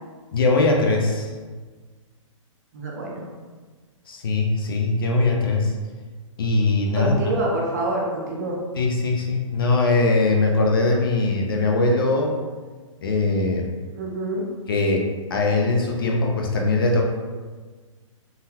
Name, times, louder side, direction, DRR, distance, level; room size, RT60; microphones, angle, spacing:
voice 1, 0.3-1.3 4.1-5.7 6.4-7.2 8.8-12.3 13.0-13.6 14.7-15.0 15.3-17.0, left 3 dB, 40° left, 1 dB, 0.4 m, -21 dB
voice 2, 2.7-3.3 6.9-8.6 13.9-14.4, right 2 dB, 30° right, -2 dB, 0.5 m, -26 dB
3.8 x 2.1 x 2.7 m, 1.4 s
hypercardioid pair, 175°, 17 cm